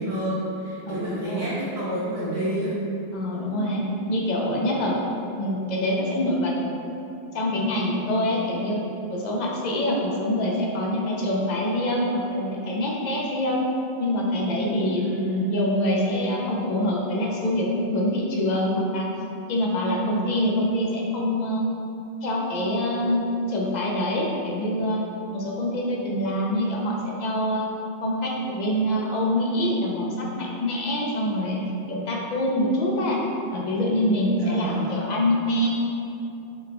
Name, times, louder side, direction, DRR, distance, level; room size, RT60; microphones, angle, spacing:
voice 1, 0.0-2.7 15.0-15.5 34.4-35.0, equal, 80° right, -11 dB, 1.0 m, -29 dB
voice 2, 0.9-1.5 3.1-5.0 5.4-6.5 6.8-7.0 7.3-8.8 9.1-13.6 14.0-15.1 15.5-19.1 19.5-21.6 22.2-25.0 25.3-27.6 28.0-31.6 31.9-33.2 33.5-35.7, left 1 dB, 55° left, -3 dB, 0.6 m, -25 dB
3.5 x 2.2 x 3.9 m, 2.8 s
omnidirectional pair, 1.1 m